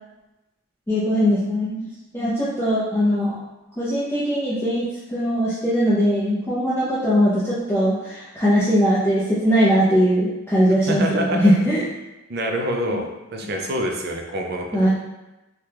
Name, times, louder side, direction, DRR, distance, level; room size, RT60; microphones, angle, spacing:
voice 1, 0.9-1.9 2.1-3.4 3.8-11.8 14.7-14.9, equal, 10° left, -11 dB, 0.5 m, -20 dB
voice 2, 10.9-11.4 12.3-13.1 13.3-14.7, equal, 50° right, 2 dB, 0.4 m, -25 dB
2.9 x 2.3 x 3.3 m, 1.0 s
head